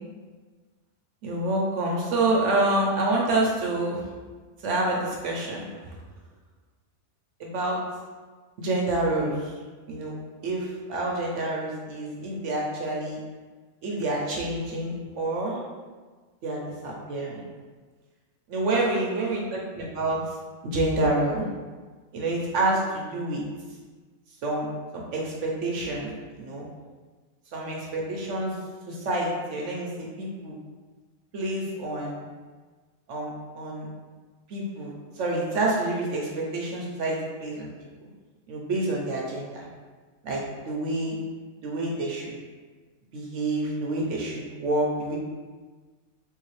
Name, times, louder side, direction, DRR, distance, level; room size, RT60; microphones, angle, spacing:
voice 1, 1.2-4.0 4.6-5.7 7.4-7.8 8.6-9.5 9.9-10.1 10.4-13.2 13.8-15.6 16.4-17.4 18.5-20.2 20.6-21.5 22.1-23.4 24.4-24.7 24.9-26.6 27.5-28.5 28.9-30.5 31.3-32.3 33.1-33.9 34.5-37.7 38.0-38.1 38.5-39.6 40.2-41.2 41.6-42.4 43.1-45.2, right 2 dB, 65° right, -2 dB, 0.9 m, -28 dB
3.5 x 2.8 x 3.1 m, 1.4 s
omnidirectional pair, 1.5 m